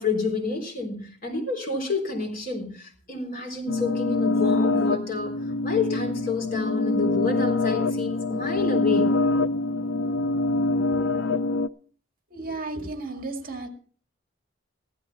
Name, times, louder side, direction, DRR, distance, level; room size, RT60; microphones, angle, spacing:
voice 1, 0.0-5.3 5.6-9.2, left 4 dB, 50° left, 3.8 m, -29 dB
sound 1, 3.7-11.7, left 2 dB, 65° left, 0.5 m, -25 dB
voice 2, 12.3-13.7, right 3 dB, 50° right, 2.0 m, -33 dB
15.5 x 12.5 x 4.1 m
head